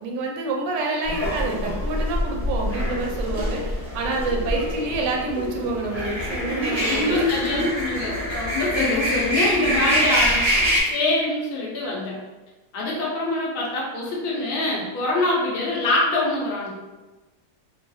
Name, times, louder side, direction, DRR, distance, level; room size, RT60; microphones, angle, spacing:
voice 1, 0.0-7.6 8.7-9.1 9.6-10.1, right 2 dB, 75° right, 1 dB, 1.2 m, -28 dB
sound 1, 1.1-10.8, equal, 35° right, 0.6 m, -25 dB
voice 2, 6.8-10.4 10.9-12.2 12.7-16.7, left 2 dB, 65° left, -4 dB, 0.5 m, -24 dB
3.0 x 2.3 x 2.6 m, 1.2 s
omnidirectional pair, 1.9 m